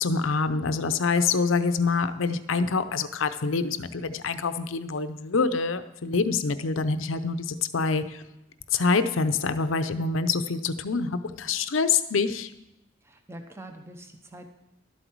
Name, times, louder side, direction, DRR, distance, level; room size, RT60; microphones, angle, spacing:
voice 1, 0.0-8.2 8.7-12.5, left 4 dB, 75° left, 11 dB, 0.6 m, -26 dB
voice 2, 13.0-14.5, right 1 dB, 15° right, 5 dB, 0.8 m, -44 dB
12.0 x 8.0 x 4.6 m, 0.92 s
head